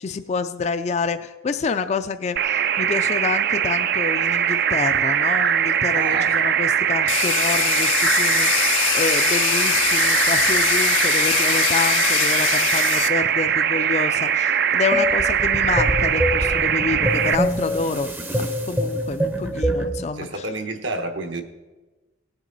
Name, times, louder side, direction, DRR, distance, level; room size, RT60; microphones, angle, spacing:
voice 1, 0.0-20.3, left 4 dB, 35° left, 9 dB, 0.3 m, -28 dB
sound 1, 2.4-17.3, right 8 dB, 55° right, 0.4 m, -21 dB
voice 2, 5.9-6.3 20.1-21.4, right 2 dB, 75° right, 5 dB, 1.2 m, -29 dB
Domestic sounds home sounds, 7.1-13.1, left 11 dB, 85° left, 0.6 m, -22 dB
sound 2, 14.9-20.1, equal, 10° right, 0.6 m, -25 dB
17.5 x 8.1 x 4.0 m, 1.2 s
head